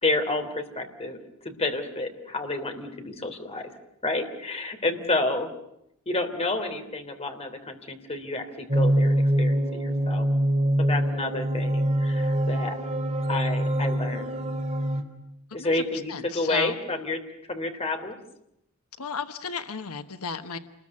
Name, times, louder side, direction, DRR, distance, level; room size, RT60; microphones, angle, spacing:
voice 1, 0.0-1.2 1.4-3.7 4.0-5.5 6.0-10.3 10.8-12.8 13.3-14.3 15.5-17.2 17.5-18.2, left 2 dB, 30° left, 6 dB, 3.2 m, -30 dB
sound 1, 8.7-15.0, right 1 dB, 30° right, 2.9 m, -24 dB
voice 2, 16.1-16.7 19.0-20.6, left 4 dB, 80° left, 8 dB, 1.2 m, -34 dB
28.5 x 21.0 x 9.8 m, 0.82 s
head